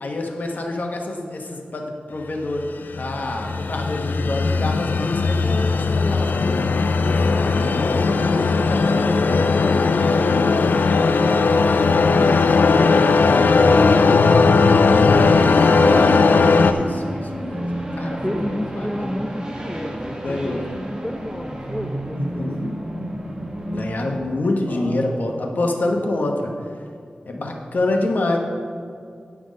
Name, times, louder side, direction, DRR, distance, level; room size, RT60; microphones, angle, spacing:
voice 1, 0.0-2.7 3.0-6.6 7.0-8.4 13.6-14.1 16.5-18.4 18.7-19.1 20.2-20.7 22.1-22.6 23.7-26.5 27.3-28.4, left 2 dB, 65° left, 2 dB, 1.2 m, -27 dB
sound 1, 2.6-16.7, left 4 dB, 85° left, 0.4 m, -17 dB
voice 2, 8.6-16.5 18.0-22.8 24.3-25.3 27.3-27.7, equal, 10° left, 1 dB, 0.7 m, -32 dB
sound 2, 14.6-24.2, right 1 dB, 25° right, 1.3 m, -30 dB
10.5 x 6.1 x 5.2 m, 2.3 s
wide cardioid pair, 90°, 3 cm